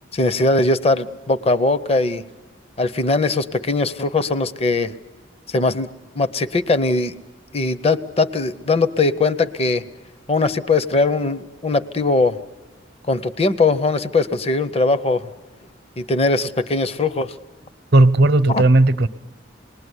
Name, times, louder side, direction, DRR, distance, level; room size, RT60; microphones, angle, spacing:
voice 1, 0.1-2.2 2.8-4.9 5.5-5.9 6.1-7.1 7.5-9.8 10.3-12.4 13.1-15.3 16.0-17.3 18.5-18.6, left 3 dB, 35° left, 0.8 m, -20 dB
voice 2, 17.9-19.1, right 2 dB, 60° right, 0.9 m, -14 dB
27.5 x 20.5 x 9.7 m
head